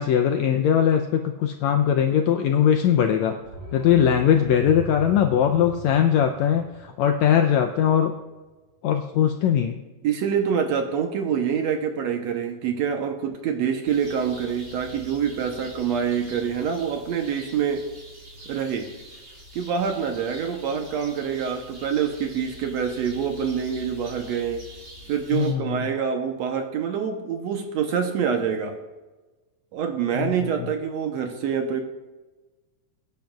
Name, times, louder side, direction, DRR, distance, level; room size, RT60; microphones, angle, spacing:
voice 1, 0.0-3.4 3.7-8.1 8.8-9.8 25.3-25.9 30.2-30.3 30.6-30.7, left 9 dB, 80° left, 5 dB, 1.6 m, -20 dB
sound 1, 3.4-8.2 8.5-8.6, right 2 dB, 40° right, 1.7 m, -39 dB
voice 2, 10.0-17.8 18.5-18.9 19.6-24.6 25.1-28.8 29.7-31.8, right 7 dB, 70° right, 5 dB, 1.7 m, -26 dB
sound 2, 13.8-25.5, equal, 25° right, 3.3 m, -45 dB
21.5 x 10.5 x 2.4 m, 1.2 s
omnidirectional pair, 3.7 m